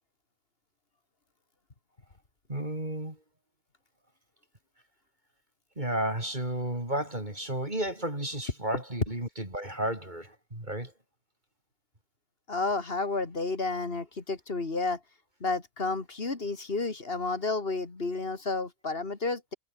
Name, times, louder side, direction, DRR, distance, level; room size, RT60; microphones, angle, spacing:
voice 1, 2.5-3.2 5.8-10.9, right 1 dB, 35° right, 5.7 m, -32 dB
voice 2, 12.5-15.0 15.4-19.5, left 3 dB, 45° left, 2.6 m, -31 dB
omnidirectional pair, 1.4 m